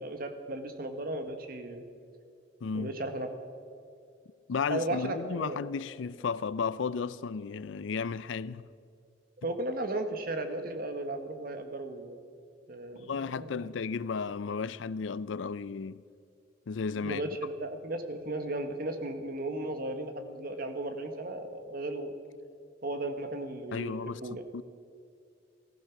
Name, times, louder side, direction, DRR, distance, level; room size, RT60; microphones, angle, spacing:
voice 1, 0.0-1.8 2.7-3.3 4.7-5.6 9.4-12.2 12.7-13.7 16.9-22.1 22.8-24.4, right 2 dB, 50° right, 1.3 m, -35 dB
voice 2, 2.6-2.9 4.5-8.7 12.9-16.0 16.7-17.2 23.7-24.2 24.5-24.6, left 5 dB, 85° left, 0.5 m, -34 dB
14.5 x 14.5 x 5.9 m
head